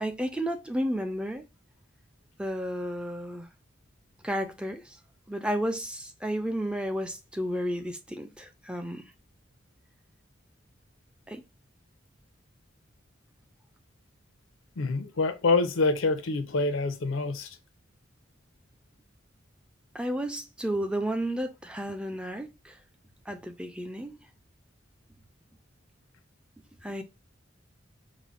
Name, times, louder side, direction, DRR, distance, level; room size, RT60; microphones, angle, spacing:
voice 1, 0.0-1.5 2.4-3.5 4.2-5.0 5.3-9.0 11.3-11.4 19.9-22.8 23.3-24.2 26.8-27.0, equal, 5° right, 0.3 m, -32 dB
voice 2, 14.8-17.6, left 3 dB, 85° left, 0.6 m, -26 dB
4.8 x 2.1 x 2.4 m
head